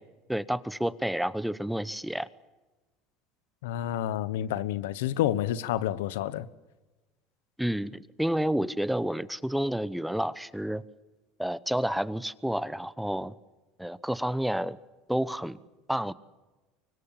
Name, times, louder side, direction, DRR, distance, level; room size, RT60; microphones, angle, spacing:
voice 1, 0.3-2.3 7.6-10.8 11.4-13.3 13.8-14.8 15.1-15.6 15.9-16.1, equal, ahead, 0.9 m, -30 dB
voice 2, 3.6-6.5, left 12 dB, 85° left, 1.0 m, -29 dB
25.0 x 23.5 x 7.4 m
supercardioid pair, 110°, 0 cm